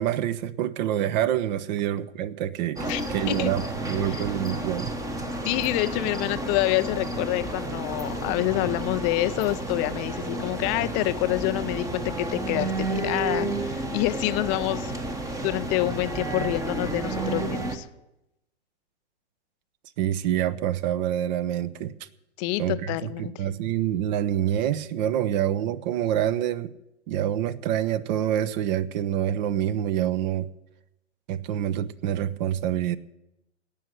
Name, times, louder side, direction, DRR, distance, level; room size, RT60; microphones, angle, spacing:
voice 1, 0.0-4.9 20.0-21.9 22.6-26.7 27.1-30.5 31.3-33.0, right 11 dB, 40° right, 17 dB, 0.8 m, -26 dB
sound 1, 2.8-17.8, right 2 dB, 10° right, 0.9 m, -31 dB
voice 2, 5.4-14.9 15.4-17.9 22.4-23.5, left 19 dB, 20° left, 14 dB, 0.4 m, -27 dB
18.0 x 6.5 x 9.4 m, 0.89 s
hypercardioid pair, 125°, 34 cm